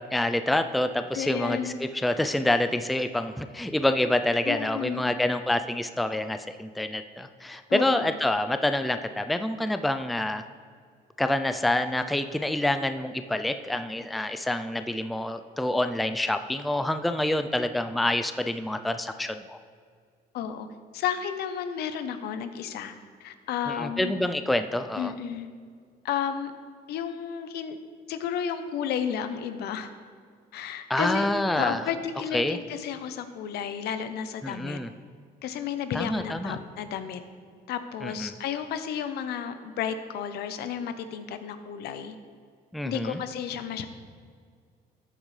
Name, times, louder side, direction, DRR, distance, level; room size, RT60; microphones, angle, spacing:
voice 1, 0.1-10.4 11.2-19.6 23.7-25.1 30.9-31.8 32.3-32.6 34.4-34.9 35.9-36.6 38.0-38.3 42.7-43.2, left 1 dB, ahead, 9 dB, 0.4 m, -27 dB
voice 2, 1.1-1.7 4.4-5.1 7.7-8.1 20.3-20.7 20.9-22.9 23.2-24.2 25.0-25.5 26.0-26.5 26.9-27.8 28.1-29.9 30.5-31.3 31.6-34.8 35.4-37.2 37.7-42.2 42.8-43.9, left 8 dB, 75° left, 10 dB, 0.8 m, -32 dB
13.5 x 8.7 x 3.3 m, 2.1 s
cardioid pair, 110°, 17 cm